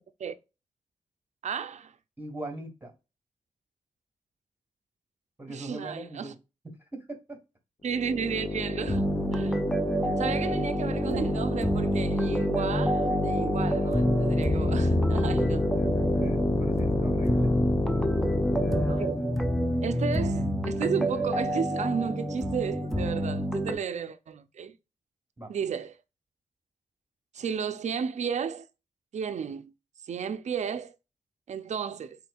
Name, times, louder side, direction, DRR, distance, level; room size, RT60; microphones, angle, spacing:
voice 1, 1.4-1.9 5.5-6.3 7.8-9.6 10.2-15.7 18.9-19.2 19.8-24.8 25.5-25.9 27.3-28.7 29.1-29.7 30.0-30.9 31.5-32.2, right 7 dB, 65° right, 0.5 m, -33 dB
voice 2, 2.2-2.9 5.4-6.4 6.9-7.4 16.1-17.5 25.4-25.5, right 1 dB, 15° right, 1.4 m, -39 dB
sound 1, 7.8-19.1, left 2 dB, 25° left, 0.8 m, -29 dB
sound 2, 8.9-23.7, equal, 5° left, 0.5 m, -28 dB
4.3 x 4.2 x 2.3 m
wide cardioid pair, 175°, 13 cm